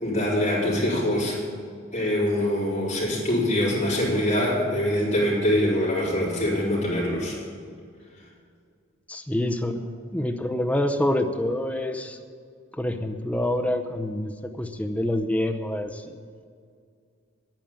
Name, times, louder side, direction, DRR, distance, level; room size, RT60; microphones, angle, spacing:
voice 1, 0.0-1.4 1.9-7.4, left 1 dB, 35° left, -6 dB, 4.3 m, -24 dB
voice 2, 9.1-12.2 12.8-14.3 14.6-16.1, left 1 dB, 5° left, 5 dB, 0.7 m, -26 dB
9.9 x 9.1 x 8.8 m, 2.2 s
head